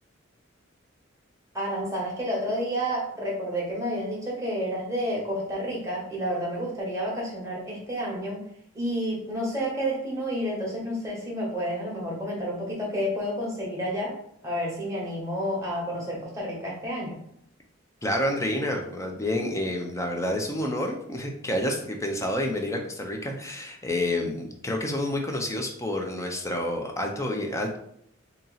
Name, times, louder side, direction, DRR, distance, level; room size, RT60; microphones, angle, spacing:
voice 1, 1.5-8.4 8.7-14.2 14.4-17.2, equal, 15° right, -4 dB, 1.1 m, -30 dB
voice 2, 18.0-27.8, left 1 dB, 15° left, 2 dB, 0.5 m, -29 dB
2.9 x 2.7 x 3.9 m, 0.71 s
head